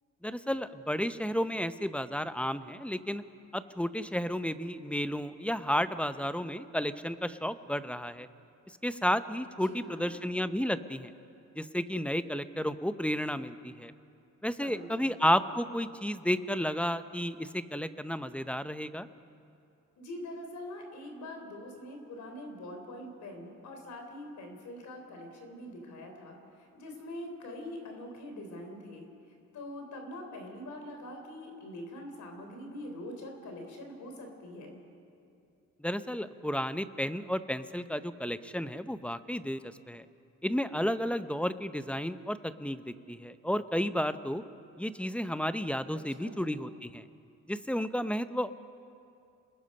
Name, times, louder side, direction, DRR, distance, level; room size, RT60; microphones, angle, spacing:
voice 1, 0.2-3.2 3.5-8.3 8.8-11.1 11.6-13.9 14.4-19.1 35.8-40.1 40.4-44.4 44.8-47.0 47.5-48.5, equal, 5° left, 12 dB, 0.7 m, -32 dB
voice 2, 9.6-10.1 14.6-15.2 20.0-29.1 29.5-34.8 45.9-46.4, left 1 dB, 70° left, 3 dB, 3.8 m, -44 dB
27.5 x 20.0 x 5.5 m, 2.6 s
cardioid pair, 90°, 30 cm